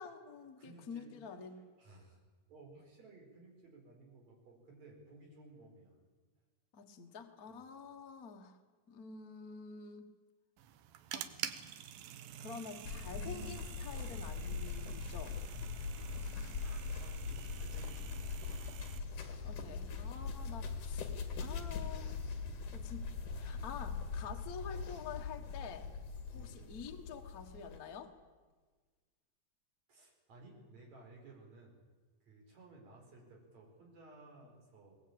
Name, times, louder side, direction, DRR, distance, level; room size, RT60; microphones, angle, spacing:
voice 1, 0.0-1.5 6.7-8.6 8.9-10.1 11.1-11.3 12.3-15.4 19.4-21.1 21.4-22.2 22.7-25.9 26.3-28.1, left 6 dB, 45° left, 4 dB, 1.1 m, -48 dB
voice 2, 0.6-1.1 1.8-2.2 2.5-5.9 7.5-7.7 16.5-18.5 26.3-26.6 29.9-31.8 32.2-34.9, right 2 dB, 50° right, 0 dB, 6.0 m, -57 dB
sound 1, 10.6-19.0, right 10 dB, 85° right, 2.8 m, -48 dB
People Running, 12.8-27.8, left 5 dB, 65° left, 3.5 m, -41 dB
22.0 x 19.5 x 8.8 m, 1.4 s
omnidirectional pair, 4.0 m